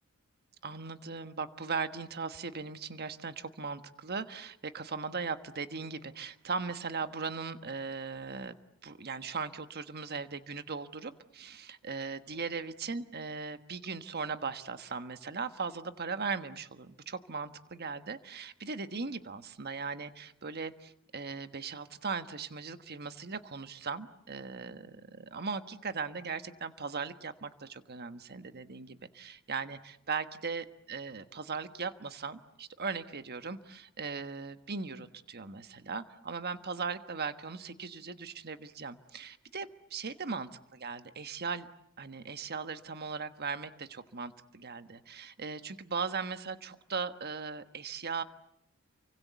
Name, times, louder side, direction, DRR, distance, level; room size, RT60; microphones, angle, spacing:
voice 1, 0.6-8.5 8.8-41.7 42.0-48.2, right 5 dB, 50° right, 10 dB, 1.4 m, -38 dB
29.5 x 24.5 x 8.2 m, 0.74 s
head